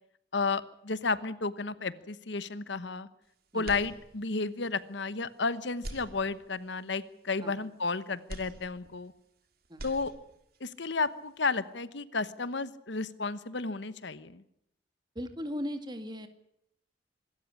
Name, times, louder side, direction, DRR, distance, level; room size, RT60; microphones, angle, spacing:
voice 1, 0.3-3.1 3.5-9.1 9.8-10.1 10.6-14.4, left 4 dB, 65° left, 15 dB, 1.1 m, -32 dB
sound 1, 3.6-4.5 5.0-5.1 5.7-6.8 8.3-9.4 9.6-10.6, right 1 dB, 50° right, 2.7 m, -45 dB
voice 2, 15.2-16.3, equal, 25° right, 8 dB, 2.2 m, -37 dB
25.5 x 13.5 x 9.9 m, 0.77 s
head